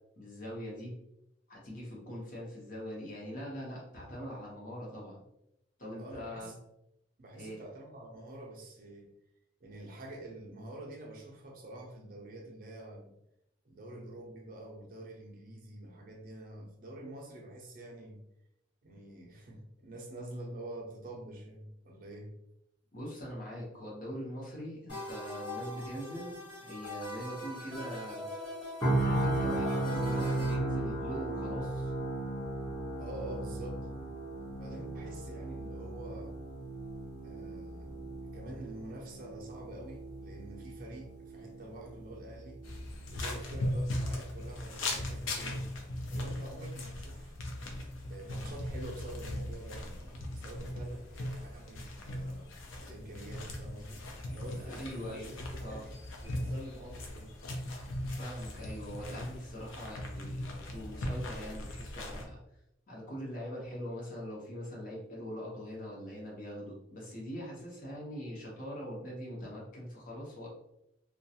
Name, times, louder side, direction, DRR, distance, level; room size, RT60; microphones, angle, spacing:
voice 1, 0.2-1.0 1.5-5.2 5.8-6.6 7.4-7.6 22.9-28.2 29.0-31.9 54.6-55.9 58.2-62.4 62.9-70.5, equal, 45° left, -3 dB, 0.8 m, -42 dB
voice 2, 6.0-6.5 7.2-9.1 9.6-13.1 13.7-18.2 18.8-22.3 33.0-33.9 34.5-36.4 37.2-38.1 38.3-42.6 43.1-45.7 46.1-47.4 48.1-52.5 52.8-57.3, right 1 dB, 45° right, -1 dB, 0.5 m, -47 dB
sound 1, 24.9-30.5, left 1 dB, 65° left, 1.2 m, -42 dB
sound 2, 28.8-42.8 43.2-43.4, right 2 dB, 10° left, 0.6 m, -36 dB
sound 3, 42.6-62.3, left 1 dB, 80° left, 0.5 m, -39 dB
2.4 x 2.2 x 2.7 m, 0.81 s
head